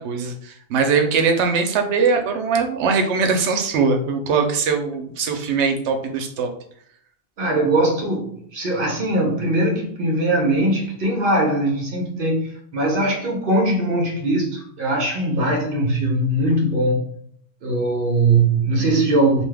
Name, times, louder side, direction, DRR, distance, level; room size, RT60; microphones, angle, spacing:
voice 1, 0.0-6.5, right 5 dB, 85° right, 5 dB, 0.9 m, -21 dB
voice 2, 7.4-17.1 17.6-19.4, right 2 dB, 60° right, 0 dB, 0.7 m, -20 dB
2.7 x 2.2 x 3.3 m, 0.65 s
omnidirectional pair, 1.1 m